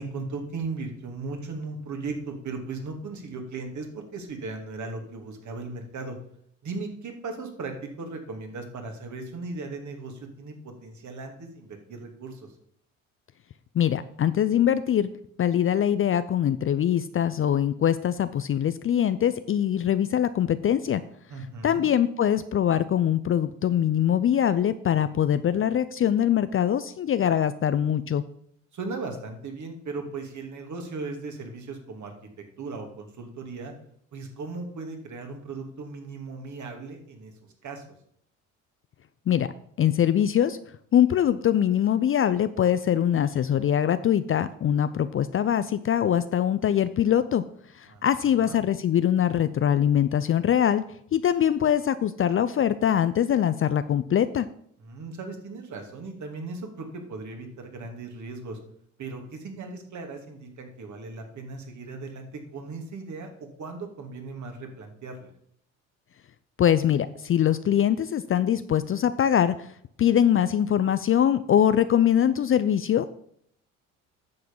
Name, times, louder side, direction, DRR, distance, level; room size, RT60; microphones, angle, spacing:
voice 1, 0.0-6.1 6.6-12.5 21.3-21.9 28.7-32.1 32.6-33.7 34.1-37.3 37.6-37.8 47.9-48.6 54.8-58.6 59.0-65.3, right 3 dB, 45° right, 4 dB, 2.6 m, -37 dB
voice 2, 13.7-15.1 15.4-21.0 21.6-28.2 39.3-39.5 39.8-40.6 40.9-47.4 47.8-50.8 51.1-54.5 66.6-69.7 70.0-73.2, left 10 dB, 35° left, 13 dB, 0.5 m, -23 dB
9.6 x 6.8 x 5.4 m, 0.68 s
hypercardioid pair, 60°, 40 cm